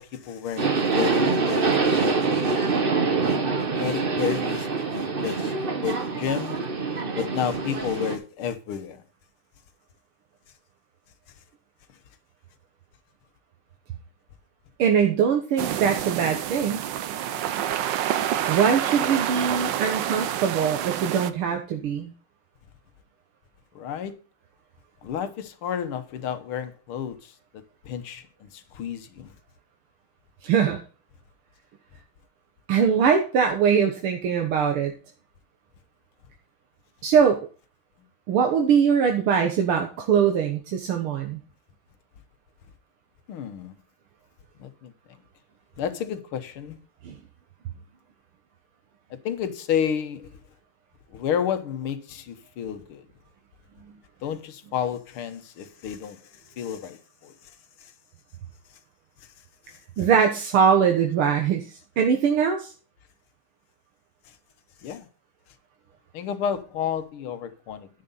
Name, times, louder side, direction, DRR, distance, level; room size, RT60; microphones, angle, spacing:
voice 1, 0.0-2.7 3.2-3.4 3.7-5.5 5.8-6.6 7.2-9.0 23.8-24.2 25.0-29.3 43.3-43.7 44.6-44.9 45.8-46.8 49.1-50.4 51.1-53.1 54.2-56.2 56.6-57.3 57.8-57.9 59.7-59.8 64.8-65.1 66.1-67.9, left 8 dB, 85° left, 2.0 m, -31 dB
Subway metro underground, 0.6-8.2, right 4 dB, 35° right, 1.1 m, -25 dB
voice 2, 14.8-16.8 18.5-22.1 30.4-30.8 32.7-34.9 37.0-37.4 38.3-41.4 47.0-47.2 60.0-61.7 62.0-62.7, right 7 dB, 85° right, 2.1 m, -22 dB
sound 1, 15.6-21.3, right 11 dB, 65° right, 1.3 m, -28 dB
10.5 x 7.7 x 4.0 m
omnidirectional pair, 2.3 m